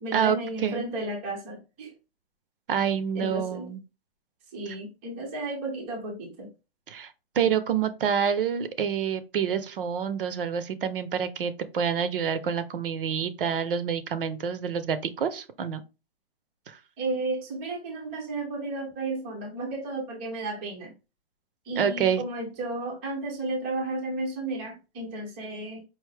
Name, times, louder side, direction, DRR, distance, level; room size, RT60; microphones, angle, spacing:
voice 1, 0.0-1.9 3.1-3.7 4.5-6.5 17.0-21.0 21.7-25.8, right 2 dB, 10° right, 0.5 m, -33 dB
voice 2, 2.7-3.8 6.9-15.8 16.7-16.8 21.8-22.2, right 7 dB, 60° right, 0.6 m, -27 dB
4.7 x 2.5 x 3.2 m
hypercardioid pair, 170°, 31 cm